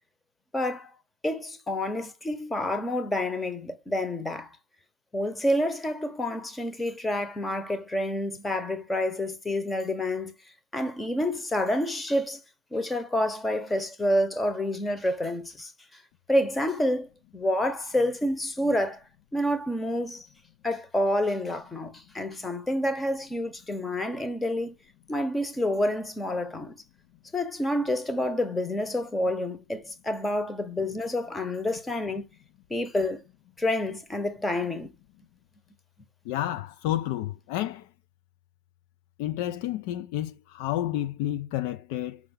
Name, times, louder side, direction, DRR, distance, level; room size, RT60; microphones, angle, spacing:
voice 1, 0.5-0.9 1.2-4.6 5.1-10.3 10.7-12.4 12.7-16.0 16.3-19.0 19.3-20.3 20.6-24.8 25.1-26.8 27.3-32.2 32.7-33.2 33.6-34.9, left 1 dB, 10° left, 1.0 m, -28 dB
voice 2, 36.3-37.9 39.2-42.2, left 13 dB, 45° left, 0.5 m, -30 dB
6.0 x 5.5 x 5.4 m
figure-of-eight pair, 90°, 0 cm